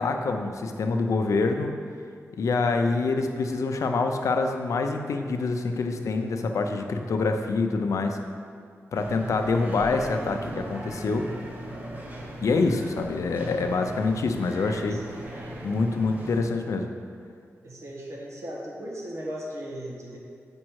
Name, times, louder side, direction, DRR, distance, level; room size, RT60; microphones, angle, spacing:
voice 1, 0.0-1.7 2.4-8.2 8.9-11.3 12.4-15.0 15.6-16.9, left 3 dB, 75° left, 5 dB, 0.5 m, -26 dB
sound 1, 8.9-16.4, right 1 dB, 30° right, 0.9 m, -38 dB
voice 2, 17.6-20.2, equal, 65° right, -3 dB, 1.5 m, -37 dB
7.3 x 5.3 x 4.7 m, 2.2 s
wide cardioid pair, 165°, 5 cm